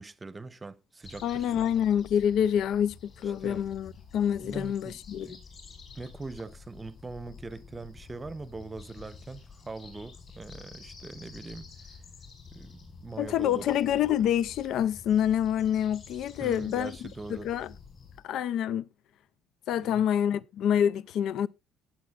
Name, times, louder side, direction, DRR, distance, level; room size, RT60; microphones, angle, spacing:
voice 1, 0.0-1.5 3.4-3.6 4.4-5.4 5.9-11.7 12.5-13.7 16.4-17.5 19.7-20.1, right 3 dB, 15° right, 0.8 m, -42 dB
sound 1, 1.0-18.2, left 5 dB, 40° left, 5.7 m, -49 dB
voice 2, 1.2-5.4 13.2-17.0 17.3-17.7 18.2-18.8 19.7-21.5, left 9 dB, 65° left, 0.5 m, -27 dB
18.0 x 7.6 x 2.4 m
cardioid pair, 130°, 0 cm